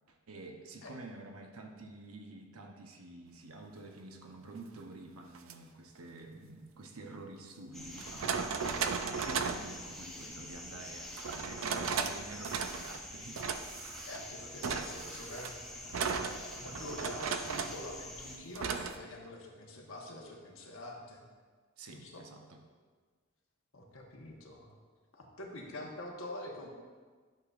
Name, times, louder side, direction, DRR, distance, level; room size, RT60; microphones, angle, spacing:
voice 1, 0.1-8.4 9.2-13.4 21.8-22.6, right 2 dB, 90° right, 2 dB, 0.8 m, -48 dB
sound 1, 5.4-5.5 7.1-7.2 8.0-9.7 11.2-12.2 12.4-13.0 13.4-14.2 14.6-17.8 18.6-19.0, right 5 dB, 70° right, 0.5 m, -36 dB
sound 2, 7.7-18.4, left 1 dB, ahead, 0.7 m, -46 dB
voice 2, 14.0-21.2 21.9-22.2 23.7-24.7 25.1-26.7, left 1 dB, 70° left, -1 dB, 1.2 m, -46 dB
11.5 x 6.6 x 2.5 m, 1.5 s
head